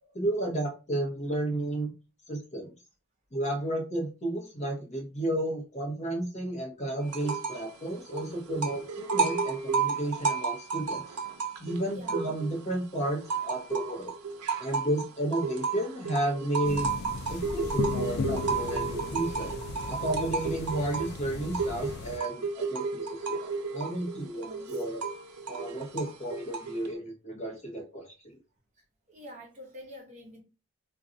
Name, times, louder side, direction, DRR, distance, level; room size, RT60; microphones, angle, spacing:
voice 1, 0.1-1.9 2.3-2.7 3.3-11.2 11.6-14.1 14.6-16.9 17.3-19.5 19.9-25.0 25.5-28.4, right 1 dB, 30° left, 0.7 m, -32 dB
sound 1, 7.1-7.7 8.0-12.6 13.0-26.9, right 4 dB, 90° right, 0.6 m, -32 dB
voice 2, 11.9-12.3 19.5-19.6 24.3-24.9 29.1-30.4, equal, 30° right, 1.0 m, -48 dB
sound 2, 16.6-22.2, left 4 dB, 45° left, 0.3 m, -36 dB
2.5 x 2.2 x 3.9 m
head